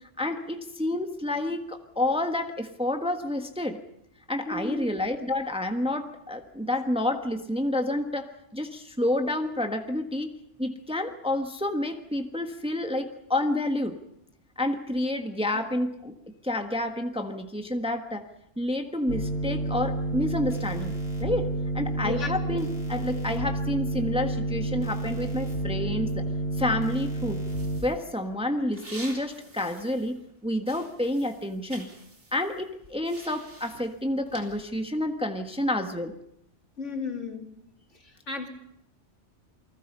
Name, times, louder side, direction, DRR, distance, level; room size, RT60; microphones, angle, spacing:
voice 1, 0.2-3.8 4.3-10.3 10.6-14.0 14.6-16.1 16.4-18.3 18.6-21.5 21.7-26.3 26.6-27.4 27.8-31.9 32.3-36.1, left 1 dB, 5° right, 5 dB, 1.3 m, -29 dB
voice 2, 4.5-4.9 15.5-15.6 22.0-22.4 36.8-37.5 38.0-38.5, left 4 dB, 90° left, 3 dB, 3.2 m, -34 dB
sound 1, 19.1-27.8, right 2 dB, 40° left, 4.1 m, -30 dB
sound 2, 27.5-30.4 30.6-35.0, right 2 dB, 80° right, 4.3 m, -48 dB
29.0 x 20.0 x 5.5 m, 0.77 s
omnidirectional pair, 1.2 m